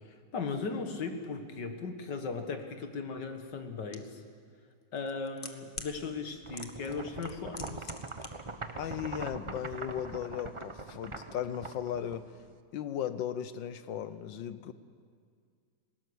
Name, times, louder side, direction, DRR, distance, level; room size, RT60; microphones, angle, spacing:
voice 1, 0.3-4.2 4.9-7.9, left 4 dB, 70° left, 6 dB, 2.3 m, -37 dB
sound 1, 3.9-4.0 5.0-5.9 6.6-7.0 7.2-8.3 8.5-8.6, left 4 dB, 30° left, 1.5 m, -42 dB
sound 2, 6.4-12.6, right 3 dB, 25° right, 0.7 m, -42 dB
voice 2, 8.7-12.4 12.7-14.7, left 9 dB, 85° left, 12 dB, 1.7 m, -36 dB
20.0 x 18.5 x 9.7 m, 2.1 s
omnidirectional pair, 2.0 m